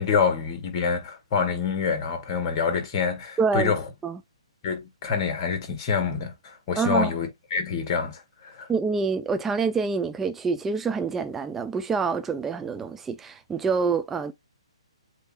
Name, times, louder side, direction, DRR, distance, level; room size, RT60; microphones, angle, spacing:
voice 1, 0.0-3.9 4.6-8.7, left 6 dB, 30° left, 2.0 m, -26 dB
voice 2, 3.4-3.7 4.0-4.2 6.7-7.1 8.7-14.3, right 5 dB, 10° right, 0.4 m, -26 dB
7.8 x 2.7 x 2.4 m
figure-of-eight pair, 130°, 3 cm